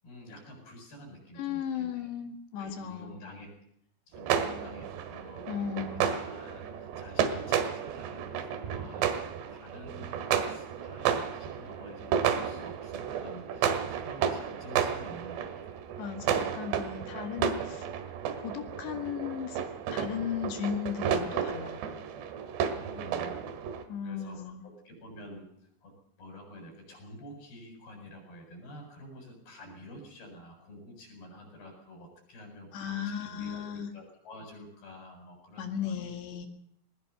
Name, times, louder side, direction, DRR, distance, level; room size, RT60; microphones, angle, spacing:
voice 1, 0.0-2.1 2.6-3.5 4.1-15.8 22.7-23.4 24.0-25.5 25.8-36.5, equal, 60° left, 2 dB, 9.4 m, -49 dB
voice 2, 1.4-3.2 5.5-6.1 16.0-17.9 18.4-19.6 19.9-21.8 23.9-24.7 32.7-33.9 35.6-36.5, left 8 dB, 75° left, 6 dB, 4.1 m, -36 dB
sound 1, 4.1-23.8, right 8 dB, 75° right, 3.7 m, -32 dB
20.5 x 20.0 x 6.9 m, 0.68 s
omnidirectional pair, 5.1 m